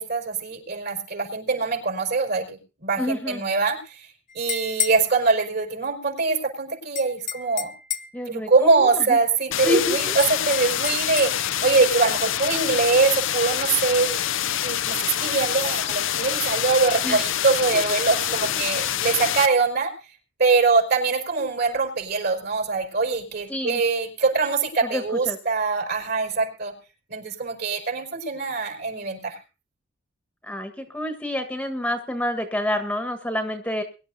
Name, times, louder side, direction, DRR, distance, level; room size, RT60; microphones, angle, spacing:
voice 1, 0.0-4.1 4.3-7.7 8.3-14.2 14.6-19.9 20.4-26.7 27.1-29.4, right 4 dB, 55° right, 3 dB, 5.3 m, -23 dB
voice 2, 3.0-3.4 8.1-9.2 9.6-10.1 17.0-17.2 18.4-18.7 23.5-23.8 24.8-25.4 30.4-33.8, left 1 dB, 5° left, 7 dB, 1.5 m, -28 dB
sound 1, 4.3-5.0 7.0-8.2 10.2-11.3, left 8 dB, 40° left, 1.0 m, -30 dB
sound 2, 9.5-19.5, left 11 dB, 65° left, 0.6 m, -26 dB
23.0 x 11.5 x 2.8 m, 0.32 s
head